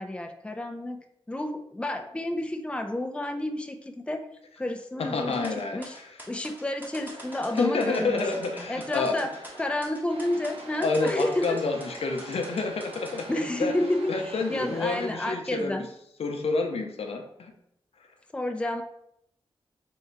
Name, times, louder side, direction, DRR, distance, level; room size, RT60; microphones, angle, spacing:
voice 1, 0.0-4.3 4.6-5.5 5.7-6.0 6.3-8.3 8.7-9.3 9.6-11.6 13.3-15.9 18.3-18.8, left 1 dB, 10° left, 6 dB, 0.4 m, -30 dB
voice 2, 5.0-6.1 7.5-9.3 10.8-13.3 13.6-13.7 14.1-15.9 16.2-17.5, left 3 dB, 80° left, 4 dB, 0.6 m, -29 dB
sound 1, 5.3-13.3, right 1 dB, 20° right, 1.2 m, -45 dB
sound 2, 7.1-9.7 10.1-15.1, right 2 dB, 75° right, 0.8 m, -45 dB
3.4 x 2.8 x 4.4 m, 0.76 s
cardioid pair, 60°, 10 cm